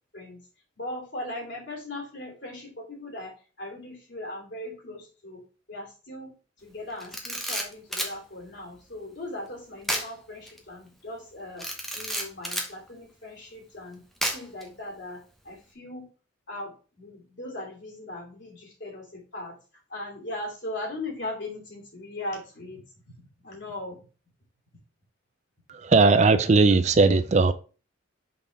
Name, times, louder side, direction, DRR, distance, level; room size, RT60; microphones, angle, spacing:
voice 1, 0.8-5.4 5.7-6.3 6.6-11.7 11.9-14.0 14.3-16.1 16.5-19.6 19.9-22.8 23.2-24.0, left 1 dB, 60° left, 2.8 m, -39 dB
Camera, 7.0-8.2 9.8-10.1 10.5-10.6 11.6-12.7 14.2-14.6, equal, ahead, 0.9 m, -30 dB
voice 2, 25.8-27.5, right 3 dB, 35° right, 0.4 m, -18 dB
5.4 x 4.2 x 4.6 m
head